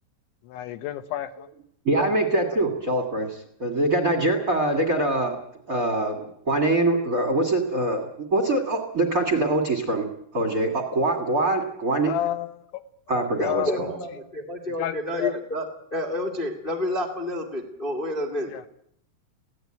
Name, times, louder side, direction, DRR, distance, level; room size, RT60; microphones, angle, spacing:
voice 1, 0.4-1.5 2.0-2.1 2.5-2.6 12.0-12.8 13.4-13.8 14.8-15.3 18.5-18.6, left 12 dB, 80° left, 11 dB, 3.5 m, -30 dB
voice 2, 1.8-5.4 5.7-10.1 10.3-12.1 13.1-13.9, right 2 dB, 30° right, 3 dB, 1.7 m, -24 dB
voice 3, 13.7-15.6 15.9-18.7, left 1 dB, 60° left, 3 dB, 0.5 m, -29 dB
22.5 x 16.5 x 9.1 m, 0.70 s
omnidirectional pair, 5.3 m